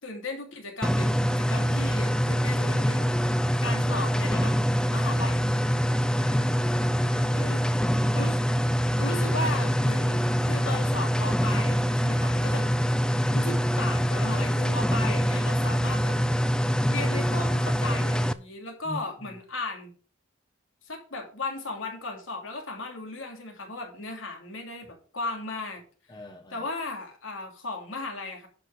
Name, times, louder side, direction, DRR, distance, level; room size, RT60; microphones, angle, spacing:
voice 1, 0.0-1.1 1.4-3.3 3.6-5.5 7.3-7.6 8.1-8.4 9.0-12.7 13.3-16.2 16.9-19.9 20.8-25.8 26.5-28.5, left 2 dB, 80° left, 2 dB, 2.9 m, -36 dB
sound 1, 0.8-18.3, equal, 5° left, 0.4 m, -25 dB
voice 2, 6.1-6.7 7.0-7.5 18.8-19.4 26.1-26.7, equal, 20° left, 5 dB, 1.0 m, -43 dB
10.5 x 5.0 x 6.1 m, 0.41 s
head